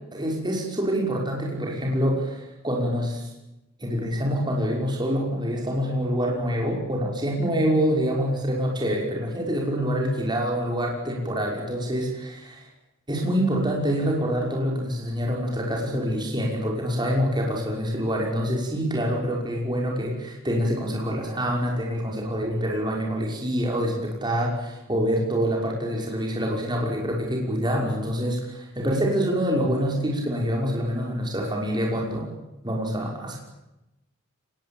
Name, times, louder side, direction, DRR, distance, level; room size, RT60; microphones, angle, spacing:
voice 1, 0.1-3.3 3.8-12.6 13.1-32.3 32.6-33.4, equal, 20° right, -1 dB, 5.9 m, -26 dB
25.0 x 21.0 x 8.9 m, 0.92 s
head